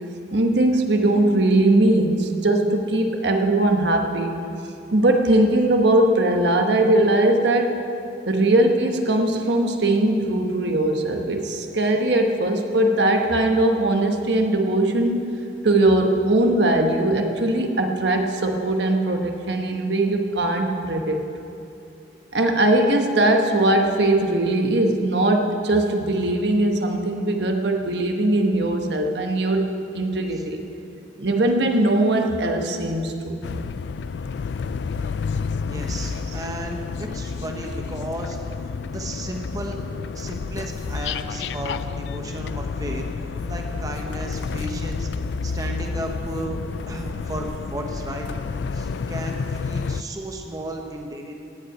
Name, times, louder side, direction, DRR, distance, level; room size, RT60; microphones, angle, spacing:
voice 1, 0.3-4.4 4.9-7.8 8.3-15.3 15.6-21.2 22.3-29.7 29.9-30.6 31.2-33.4, right 1 dB, 75° right, 3 dB, 1.2 m, -20 dB
sound 1, 33.4-50.0, left 5 dB, 75° left, 0.3 m, -30 dB
voice 2, 35.6-39.8 40.1-45.1 45.4-46.6 46.9-48.3 48.7-51.3, right 1 dB, 20° right, 2 dB, 0.9 m, -34 dB
16.0 x 5.7 x 8.6 m, 2.7 s
head